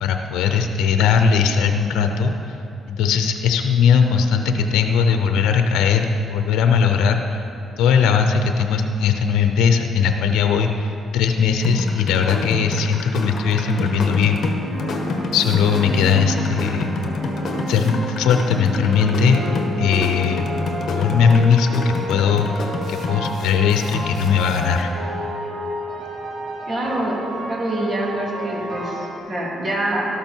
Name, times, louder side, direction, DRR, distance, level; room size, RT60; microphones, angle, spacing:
voice 1, 0.0-2.6 2.9-7.4 7.8-14.4 15.3-16.9 17.7-19.4 19.8-20.5 20.9-24.9, left 6 dB, 90° left, 5 dB, 0.7 m, -19 dB
sound 1, 11.6-24.8, left 3 dB, 55° left, 1.3 m, -29 dB
sound 2, 13.2-29.2, right 1 dB, 70° right, 3.5 m, -31 dB
voice 2, 26.7-27.1 27.5-30.1, right 1 dB, 35° right, -3 dB, 3.2 m, -25 dB
13.0 x 12.0 x 4.6 m, 2.9 s
cardioid pair, 90°, 0 cm